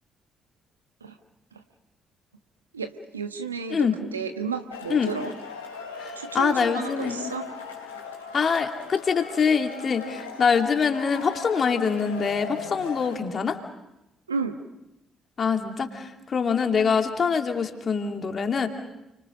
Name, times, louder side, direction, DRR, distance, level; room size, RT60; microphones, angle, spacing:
voice 1, 2.7-5.3 6.2-7.5 14.3-14.6, right 5 dB, 85° right, 8 dB, 1.2 m, -32 dB
Male speech man speaking / Shout / Clapping, 4.7-13.1, left 6 dB, 80° left, 3.3 m, -39 dB
voice 2, 6.0-7.3 8.3-13.6 15.4-18.7, left 6 dB, 45° left, 4 dB, 2.6 m, -24 dB
30.0 x 24.5 x 5.3 m, 0.92 s
figure-of-eight pair, 45°, 0 cm